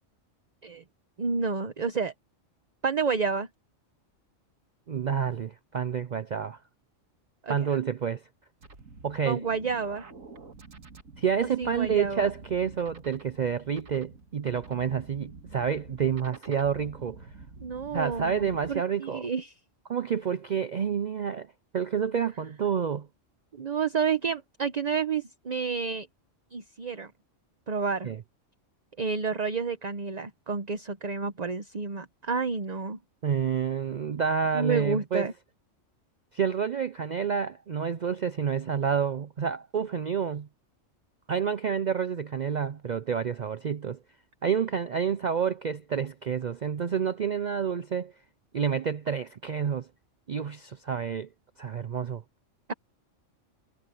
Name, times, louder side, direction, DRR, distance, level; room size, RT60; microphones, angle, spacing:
voice 1, 1.2-2.1 2.8-3.5 7.4-7.5 9.2-10.0 11.6-12.3 17.6-19.5 23.5-26.1 26.5-27.1 27.7-28.1 29.0-33.0 34.5-35.3, right 5 dB, 35° right, 0.9 m, -30 dB
voice 2, 4.9-6.6 7.5-8.2 9.0-9.4 11.2-17.3 17.9-19.3 19.9-21.5 21.7-23.1 28.0-28.2 33.2-35.3 36.3-40.5 41.3-44.0 44.4-48.1 48.5-49.9 50.3-51.3 51.6-52.2, right 7 dB, 50° right, 0.5 m, -29 dB
sound 1, 8.6-18.8, right 3 dB, 85° right, 2.5 m, -48 dB
omnidirectional pair, 1.3 m